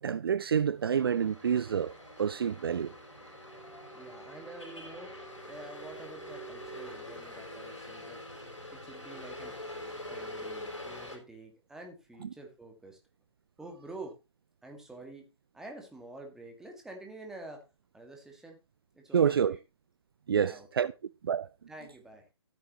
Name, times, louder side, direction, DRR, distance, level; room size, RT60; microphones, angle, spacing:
voice 1, 0.0-2.9 12.2-12.3 19.1-19.6 20.3-20.9 21.2-21.5, right 8 dB, 50° right, 0.4 m, -28 dB
sound 1, 0.8-11.2, left 1 dB, 85° left, 4.4 m, -44 dB
voice 2, 3.9-5.1 5.5-8.2 8.7-9.6 10.1-13.0 13.6-14.2 14.6-15.3 15.5-17.6 17.9-18.6 18.9-19.6 20.3-20.7 21.7-22.2, right 2 dB, 5° right, 1.9 m, -48 dB
13.5 x 8.5 x 3.0 m
figure-of-eight pair, 135°, 16 cm